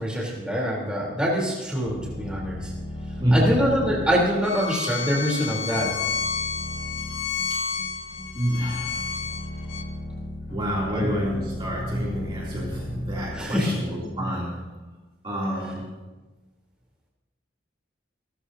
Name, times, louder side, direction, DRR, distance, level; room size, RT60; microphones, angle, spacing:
voice 1, 0.0-2.7 3.3-5.9 10.9-11.1 13.3-13.7, equal, 5° right, -4 dB, 3.5 m, -25 dB
sound 1, 1.8-14.3, left 1 dB, 45° left, 5.5 m, -37 dB
voice 2, 3.2-3.5 7.5-7.6 8.3-9.1 10.5-14.7 15.2-15.9, equal, 25° right, -5 dB, 2.9 m, -27 dB
Bowed string instrument, 4.4-9.8, left 6 dB, 90° left, 1.5 m, -31 dB
28.5 x 14.0 x 2.8 m, 1.2 s
head